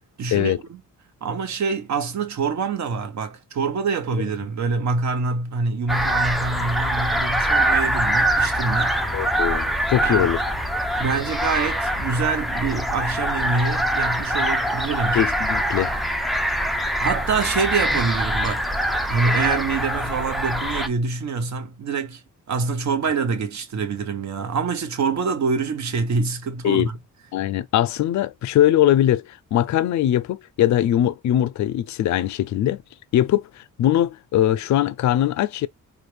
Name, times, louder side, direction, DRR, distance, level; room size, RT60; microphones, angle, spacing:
voice 1, 0.2-0.5 1.2-9.0 10.0-10.4 11.0-15.2 17.0-18.7 19.1-22.2 22.5-27.0, right 4 dB, 60° right, 0.9 m, -25 dB
sound 1, 5.9-20.9, right 1 dB, ahead, 0.4 m, -23 dB
voice 2, 9.1-10.4 15.1-15.9 26.6-26.9 27.3-29.2 29.5-32.8 33.1-35.7, left 12 dB, 60° left, 0.4 m, -21 dB
4.5 x 2.3 x 3.3 m
cardioid pair, 130°, 33 cm